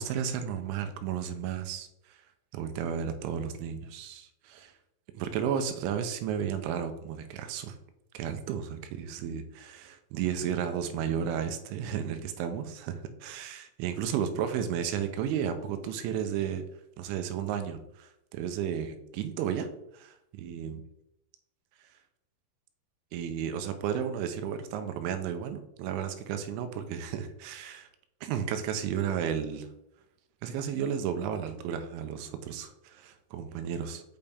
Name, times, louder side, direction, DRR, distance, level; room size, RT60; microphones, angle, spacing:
voice 1, 0.0-2.2 2.5-4.7 5.1-7.8 8.1-16.7 17.0-19.7 19.9-20.8 23.1-27.9 28.2-29.7 30.4-34.0, right 8 dB, 85° right, 8 dB, 3.0 m, -33 dB
8.8 x 5.3 x 3.5 m, 0.85 s
omnidirectional pair, 5.4 m